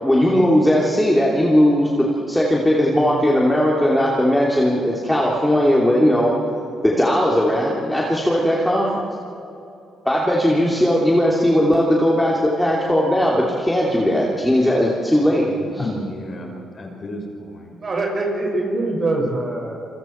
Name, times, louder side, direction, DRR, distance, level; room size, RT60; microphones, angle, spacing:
voice 1, 0.0-6.4 6.8-8.9 10.0-15.5, equal, 5° left, -4 dB, 3.0 m, -18 dB
voice 2, 15.8-17.8, left 1 dB, 40° left, 1 dB, 4.8 m, -32 dB
voice 3, 17.8-19.8, right 2 dB, 40° right, 0 dB, 5.9 m, -24 dB
28.0 x 23.5 x 4.6 m, 2.8 s
cardioid pair, 90°, 0 cm